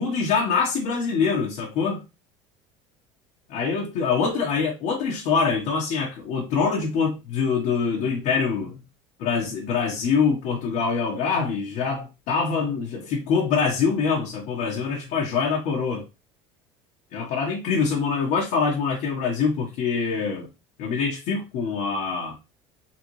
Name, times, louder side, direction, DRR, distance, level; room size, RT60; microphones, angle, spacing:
voice 1, 0.0-2.0 3.5-8.8 9.2-16.0 17.1-20.5 20.8-22.4, left 5 dB, 65° left, 1.4 m, -24 dB
4.1 x 3.4 x 3.1 m
hypercardioid pair, 90°, 14 cm